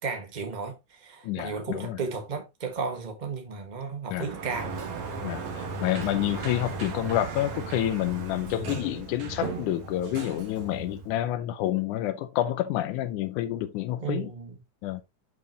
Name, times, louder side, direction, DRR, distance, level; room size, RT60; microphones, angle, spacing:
voice 1, 0.0-4.8 14.0-14.6, right 5 dB, 25° right, 1.1 m, -34 dB
voice 2, 1.2-2.0 4.1-4.3 5.2-14.3 14.8-15.0, left 13 dB, 85° left, 2.2 m, -29 dB
Sliding door, 4.1-11.2, right 4 dB, 65° right, 2.9 m, -36 dB
8.5 x 5.7 x 2.9 m
omnidirectional pair, 3.5 m